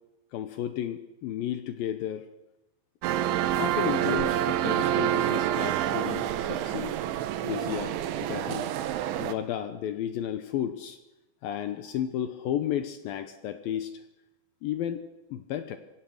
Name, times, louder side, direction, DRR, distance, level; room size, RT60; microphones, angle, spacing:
voice 1, 0.3-2.3 3.6-7.0 7.4-8.7 9.2-11.0 11.4-13.9 14.6-15.0 15.3-15.8, left 10 dB, 85° left, 9 dB, 2.0 m, -33 dB
sound 1, 3.0-9.3, right 11 dB, 85° right, 3.3 m, -27 dB
25.0 x 16.5 x 6.5 m, 0.98 s
omnidirectional pair, 5.4 m